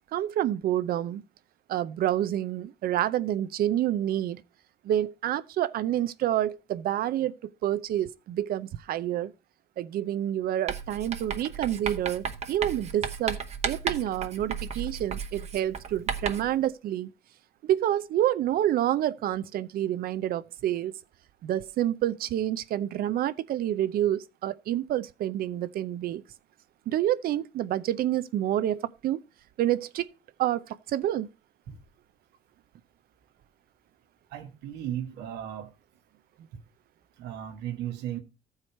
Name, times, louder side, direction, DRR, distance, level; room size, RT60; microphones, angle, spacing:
voice 1, 0.1-1.2 1.7-4.4 4.8-7.3 7.6-9.3 9.8-17.1 17.6-20.9 21.4-26.2 26.9-29.2 29.6-30.1 30.4-31.3, right 12 dB, 60° right, 0.6 m, -28 dB
Writing, 10.7-16.6, right 6 dB, 40° right, 1.1 m, -34 dB
voice 2, 34.3-35.7 36.5-36.6 37.2-38.2, right 11 dB, 85° right, 1.4 m, -36 dB
14.0 x 4.8 x 4.3 m
cardioid pair, 110°, 17 cm